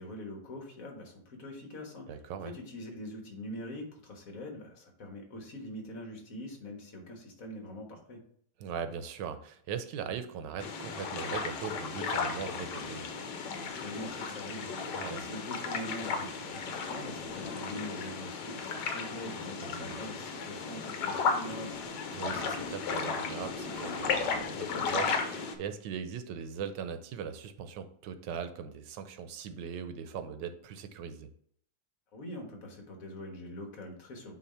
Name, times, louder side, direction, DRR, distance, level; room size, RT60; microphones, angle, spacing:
voice 1, 0.0-2.2 2.4-8.2 13.8-21.8 32.1-34.4, left 1 dB, 50° left, 2 dB, 1.7 m, -43 dB
voice 2, 2.1-2.5 8.6-13.0 14.9-15.2 19.6-19.9 22.1-31.3, right 7 dB, 80° right, 8 dB, 1.3 m, -40 dB
sound 1, 10.6-25.6, left 5 dB, 75° left, 1.4 m, -35 dB
8.5 x 3.2 x 4.2 m, 0.63 s
omnidirectional pair, 1.9 m